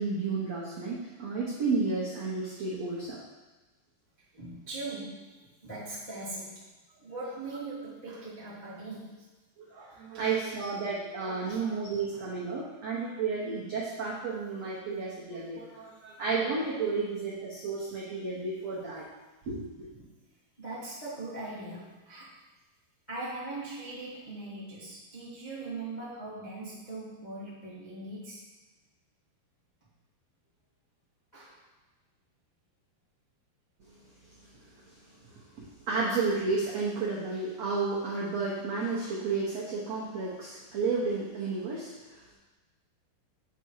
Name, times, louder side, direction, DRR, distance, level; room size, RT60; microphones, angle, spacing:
voice 1, 0.0-3.2 9.6-19.0 19.5-19.9 35.9-42.4, right 4 dB, 80° right, -6 dB, 1.4 m, -32 dB
voice 2, 4.4-6.7 7.0-9.3 9.9-10.4 11.4-11.6 19.9-20.1 20.6-22.3 23.1-28.4 31.3-31.6, right 2 dB, 55° left, -10 dB, 0.4 m, -40 dB
8.4 x 5.4 x 4.7 m, 1.2 s
omnidirectional pair, 5.0 m